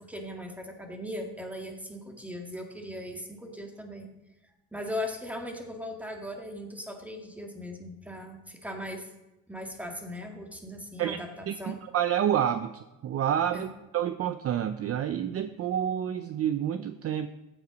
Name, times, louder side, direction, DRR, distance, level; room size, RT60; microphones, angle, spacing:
voice 1, 0.0-4.1 4.7-9.1 9.5-11.8 13.5-13.7, left 1 dB, 5° right, 3 dB, 1.9 m, -38 dB
voice 2, 11.5-13.7 13.9-17.3, right 10 dB, 40° right, 11 dB, 0.6 m, -28 dB
15.0 x 9.8 x 5.1 m, 0.99 s
cardioid pair, 150°, 38 cm